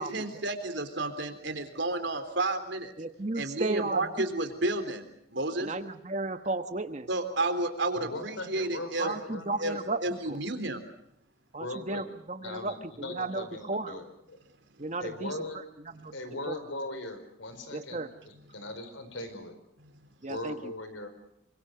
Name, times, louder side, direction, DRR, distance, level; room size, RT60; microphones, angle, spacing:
voice 1, 0.0-2.9 3.4-5.0 5.3-5.7 7.1-9.1 9.6-10.8, right 2 dB, 70° right, 7 dB, 3.7 m, -31 dB
voice 2, 3.0-4.3 5.6-7.1 9.0-10.2 11.5-14.0 14.8-15.3 15.9-16.2 16.5-16.6 17.7-18.1 20.2-20.7, right 2 dB, 35° right, 8 dB, 1.1 m, -34 dB
voice 3, 7.9-10.1 11.6-12.1 12.4-14.4 15.0-15.6 16.1-19.6 20.3-21.1, left 2 dB, 90° left, 9 dB, 5.0 m, -39 dB
27.5 x 25.0 x 6.8 m, 0.76 s
head